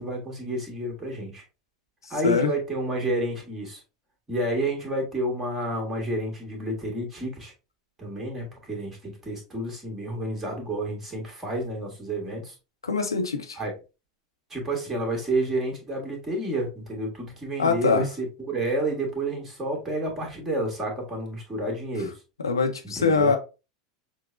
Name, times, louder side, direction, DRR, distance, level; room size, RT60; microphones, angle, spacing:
voice 1, 0.0-1.4 2.1-3.8 4.3-7.5 8.0-12.5 13.5-13.7 14.5-22.1 22.8-23.3, right 1 dB, 15° right, 1.6 m, -30 dB
voice 2, 12.8-13.6 17.6-18.1 22.4-23.4, left 4 dB, 80° left, 0.7 m, -23 dB
6.1 x 2.1 x 2.5 m
figure-of-eight pair, 85°, 2 cm